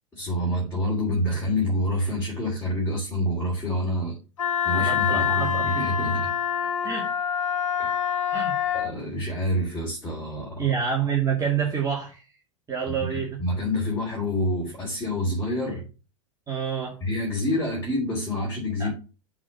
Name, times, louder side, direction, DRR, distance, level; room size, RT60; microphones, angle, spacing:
voice 1, 0.1-4.2 4.6-6.3 8.7-10.7 12.8-15.8 17.0-18.9, left 1 dB, 15° left, -4 dB, 3.2 m, -27 dB
Wind instrument woodwind instrument, 4.4-8.9, left 8 dB, 75° left, 1.3 m, -26 dB
voice 2, 4.7-5.7 6.8-7.1 8.3-8.5 10.6-12.2 12.7-13.4 16.5-17.0 18.8-18.9, right 7 dB, 20° right, -3 dB, 2.3 m, -27 dB
6.1 x 4.4 x 6.2 m, 0.33 s
figure-of-eight pair, 95°, 17 cm